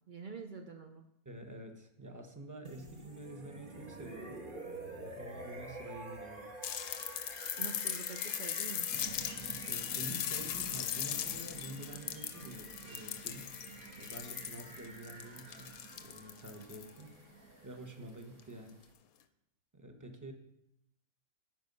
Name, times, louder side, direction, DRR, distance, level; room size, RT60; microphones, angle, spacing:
voice 1, 0.1-1.1 7.6-8.9, right 4 dB, 75° right, 4 dB, 0.4 m, -46 dB
voice 2, 1.2-4.4 4.9-6.5 9.7-13.6 14.0-17.2 17.6-18.8 19.7-20.3, right 1 dB, 15° right, 4 dB, 0.8 m, -48 dB
sound 1, 2.6-18.5, right 2 dB, 35° right, 1.3 m, -50 dB
sound 2, 6.6-17.0 18.4-18.5, left 10 dB, 65° left, 1.0 m, -39 dB
sound 3, 8.9-18.9, right 7 dB, 60° right, 1.2 m, -52 dB
12.0 x 5.4 x 5.4 m, 0.83 s
omnidirectional pair, 1.8 m